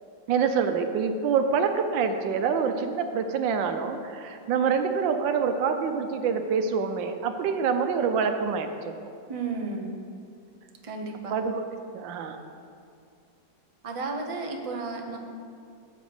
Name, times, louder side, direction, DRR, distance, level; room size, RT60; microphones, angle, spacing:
voice 1, 0.3-8.9 11.3-11.7 11.9-12.4, right 6 dB, 80° right, 7 dB, 1.4 m, -26 dB
voice 2, 9.3-10.0 10.8-11.3 13.8-15.2, right 3 dB, 60° right, 3 dB, 0.3 m, -33 dB
11.5 x 4.1 x 7.9 m, 2.4 s
omnidirectional pair, 2.0 m